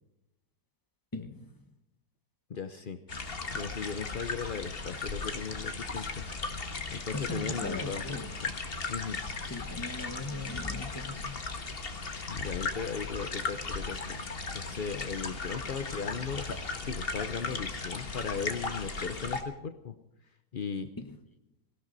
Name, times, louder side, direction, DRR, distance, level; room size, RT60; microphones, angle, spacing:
voice 1, 1.1-1.5 7.1-8.3 9.5-11.4 21.0-21.2, left 2 dB, 15° left, 7 dB, 1.2 m, -39 dB
voice 2, 2.5-3.0 3.5-6.2 6.9-8.5 8.9-9.2 12.3-14.2 14.5-19.9 20.5-20.9, left 6 dB, 60° left, 9 dB, 0.5 m, -37 dB
sound 1, 3.1-19.4, left 3 dB, 35° left, 1.6 m, -37 dB
18.5 x 16.5 x 4.1 m, 0.87 s
omnidirectional pair, 2.0 m